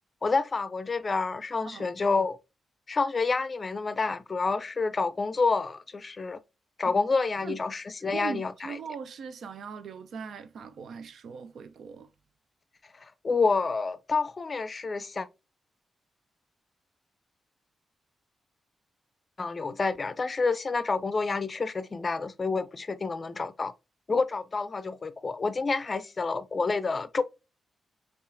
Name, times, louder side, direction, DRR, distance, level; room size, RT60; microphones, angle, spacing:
voice 1, 0.2-2.4 2.9-6.4 6.8-8.8 12.9-15.3 19.4-23.7 24.1-27.2, left 4 dB, 40° left, 0.4 m, -28 dB
voice 2, 8.1-12.1, right 6 dB, 75° right, 0.4 m, -40 dB
5.5 x 2.4 x 2.5 m
cardioid pair, 60°, 0 cm